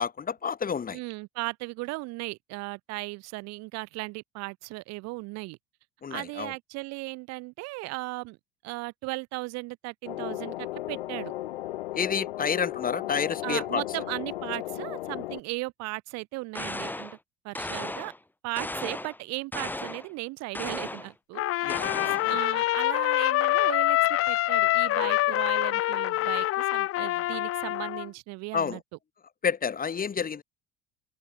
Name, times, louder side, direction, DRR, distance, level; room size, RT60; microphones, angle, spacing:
voice 1, 0.0-1.0 6.0-6.5 11.9-13.8 21.6-22.4 28.5-28.8 29.4-30.4, left 6 dB, 30° left, 1.6 m, -30 dB
voice 2, 0.9-5.6 6.1-8.4 8.6-11.3 13.4-17.2 17.4-18.1 18.4-21.9 22.3-28.8, right 23 dB, 65° right, 1.1 m, -36 dB
sound 1, 10.1-15.4, left 15 dB, 90° left, 0.6 m, -35 dB
sound 2, 16.5-17.2 17.5-18.2 18.6-19.2 19.5-20.1 20.5-21.1 21.7-22.3, left 1 dB, 5° left, 1.0 m, -35 dB
Trumpet, 21.3-28.1, left 16 dB, 50° left, 0.8 m, -25 dB
hypercardioid pair, 70°, 29 cm